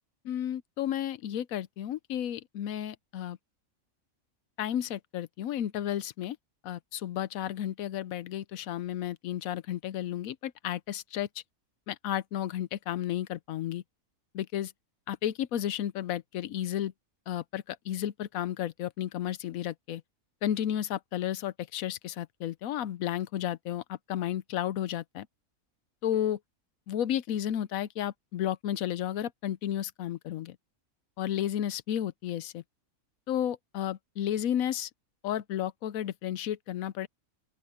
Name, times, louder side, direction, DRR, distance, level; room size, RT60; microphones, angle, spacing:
voice 1, 0.2-3.4 4.6-6.4 6.6-11.3 11.9-13.8 14.3-14.7 15.1-16.9 17.3-20.0 20.4-25.3 26.0-26.4 26.9-30.6 31.2-32.6 33.3-34.9 35.2-37.1, left 11 dB, 80° left, 1.1 m, -32 dB
open air
omnidirectional pair, 1.5 m